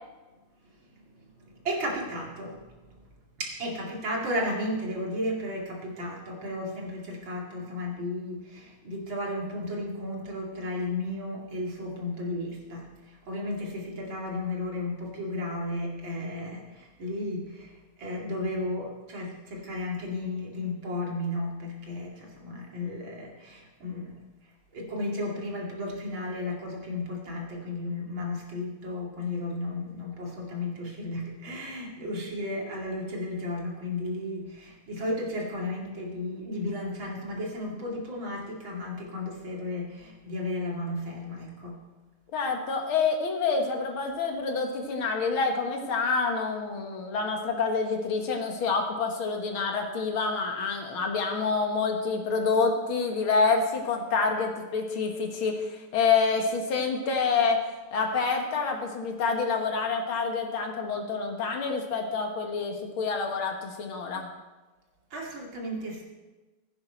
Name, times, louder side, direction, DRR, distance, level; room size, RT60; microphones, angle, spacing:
voice 1, 0.9-3.0 3.4-24.2 24.7-41.8 65.1-66.0, left 1 dB, 65° right, -2 dB, 3.1 m, -34 dB
voice 2, 42.3-64.3, left 4 dB, 75° left, 3 dB, 2.3 m, -27 dB
15.5 x 9.7 x 4.5 m, 1.2 s
omnidirectional pair, 2.3 m